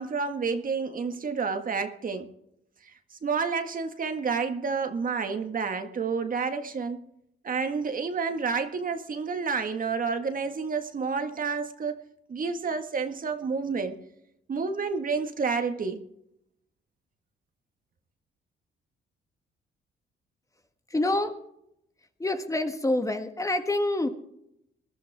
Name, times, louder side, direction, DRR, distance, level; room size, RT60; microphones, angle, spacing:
voice 1, 0.0-2.3 2.8-7.1 7.4-12.0 12.3-13.9 14.5-16.0, right 5 dB, 45° right, 7 dB, 1.7 m, -29 dB
voice 2, 20.9-21.4 22.2-24.1, left 2 dB, 15° left, 7 dB, 1.6 m, -27 dB
21.0 x 12.5 x 3.6 m, 0.76 s
cardioid pair, 90°, 20 cm